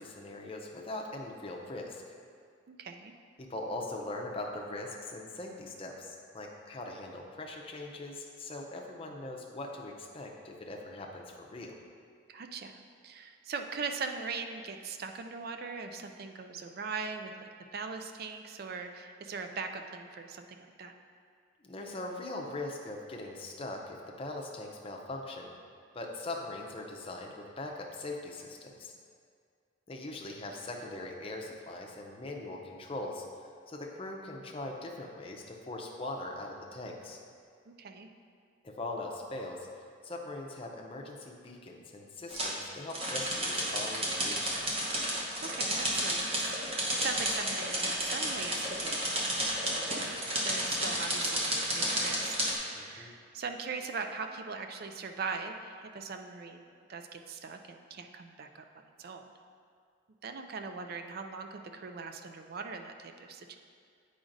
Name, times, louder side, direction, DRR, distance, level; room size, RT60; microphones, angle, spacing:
voice 1, 0.0-2.0 3.4-11.7 21.6-25.5 25.9-28.9 29.9-37.2 38.6-39.7 40.0-44.7 52.7-53.1, left 2 dB, 30° left, 0 dB, 0.6 m, -41 dB
voice 2, 2.7-3.1 12.3-20.9 37.7-38.1 45.0-49.2 49.5-50.1 50.4-59.3 60.2-63.6, right 4 dB, 50° right, 6 dB, 0.4 m, -41 dB
sound 1, 42.3-42.5 42.9-52.5, right 1 dB, 30° right, 0.9 m, -32 dB
8.6 x 4.9 x 2.6 m, 2.2 s
head